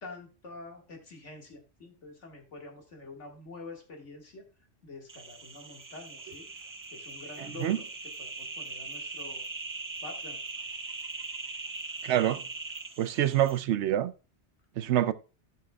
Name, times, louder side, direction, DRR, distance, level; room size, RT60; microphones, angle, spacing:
voice 1, 0.0-4.4 4.8-6.5 6.9-7.9 8.2-9.5 10.0-10.4, left 3 dB, 85° left, 2.2 m, -46 dB
sound 1, 5.1-13.6, right 3 dB, 30° right, 0.4 m, -41 dB
voice 2, 12.0-12.4 13.0-14.1 14.8-15.1, right 12 dB, 75° right, 0.9 m, -26 dB
15.5 x 5.8 x 2.3 m
omnidirectional pair, 1.2 m